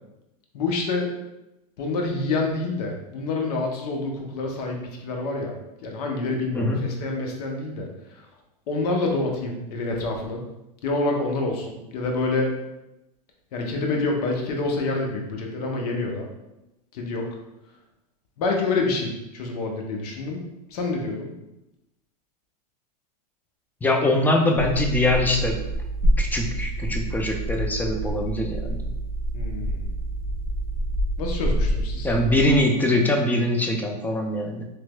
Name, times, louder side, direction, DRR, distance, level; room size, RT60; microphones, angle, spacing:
voice 1, 0.5-1.1 1.8-5.6 5.8-8.2 8.7-10.4 10.8-12.6 13.5-16.3 16.9-17.4 18.4-20.4 20.7-21.3 29.3-29.9 31.2-32.1, left 3 dB, 75° left, 1 dB, 0.8 m, -27 dB
voice 2, 23.8-25.6 26.2-28.9 32.0-34.6, left 1 dB, 10° left, 2 dB, 0.4 m, -23 dB
sound 1, 24.6-32.6, right 1 dB, 50° left, 1.4 m, -27 dB
3.2 x 2.9 x 2.2 m, 0.93 s
supercardioid pair, 115°, 20 cm